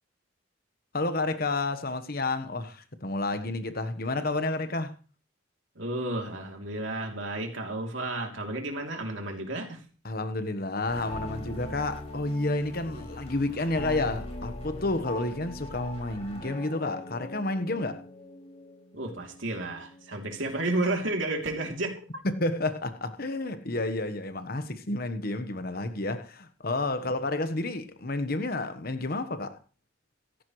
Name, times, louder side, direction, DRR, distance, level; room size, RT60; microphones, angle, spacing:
voice 1, 0.9-5.0 10.0-18.0 22.2-29.6, left 2 dB, 50° left, 1.2 m, -30 dB
voice 2, 5.7-9.8 12.9-13.1 15.2-15.3 18.9-21.9, right 2 dB, 70° right, 3.1 m, -32 dB
sound 1, 10.9-21.3, left 1 dB, 30° left, 5.5 m, -41 dB
15.5 x 15.0 x 3.2 m
head